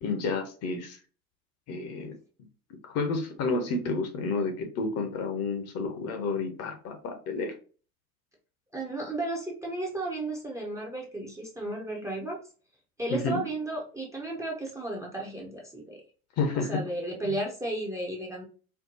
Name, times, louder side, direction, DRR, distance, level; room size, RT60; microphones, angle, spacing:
voice 1, 0.0-1.0 1.7-2.2 2.8-7.5 13.1-13.4 16.4-16.8 17.2-17.3, left 3 dB, 35° left, 5 dB, 0.8 m, -30 dB
voice 2, 8.7-12.4 13.0-16.0 16.5-18.5, right 2 dB, 5° right, -1 dB, 0.7 m, -34 dB
4.5 x 2.2 x 2.6 m, 0.37 s
figure-of-eight pair, 75°, 44 cm